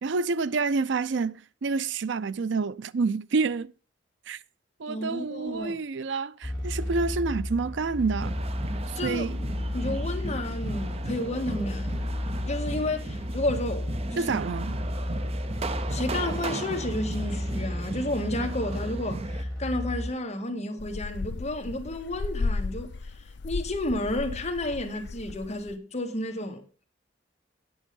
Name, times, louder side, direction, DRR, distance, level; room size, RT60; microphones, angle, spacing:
voice 1, 0.0-3.7 4.3-4.4 4.8-8.4 8.9-9.4 14.2-14.8, right 4 dB, 75° right, 0.5 m, -28 dB
voice 2, 4.9-5.7 9.0-9.3 9.7-12.0 12.4-14.3 15.9-22.9 23.4-26.9, left 1 dB, 35° left, 1.8 m, -31 dB
sound 1, 6.4-20.1, left 1 dB, 5° left, 5.3 m, -33 dB
sound 2, 8.2-19.4, right 3 dB, 35° right, 0.6 m, -36 dB
sound 3, 20.8-25.7, left 3 dB, 65° left, 0.5 m, -34 dB
8.7 x 8.2 x 5.3 m
head